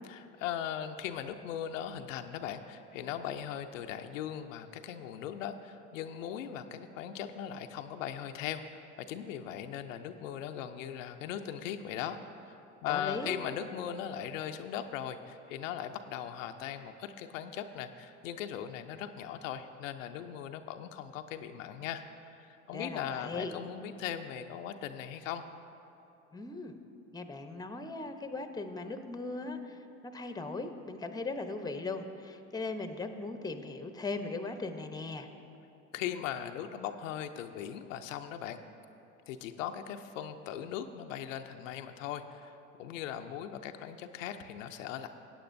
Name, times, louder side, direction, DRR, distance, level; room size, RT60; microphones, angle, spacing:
voice 1, 0.1-22.0 22.3-25.4 35.9-38.6 39.3-45.1, left 9 dB, 85° left, 7 dB, 0.5 m, -39 dB
voice 2, 12.9-13.4 22.7-23.5 26.3-26.8 27.1-29.8 30.1-35.3, left 3 dB, 10° left, 7 dB, 0.7 m, -38 dB
16.0 x 8.9 x 2.6 m, 2.9 s
hypercardioid pair, 70°, 38 cm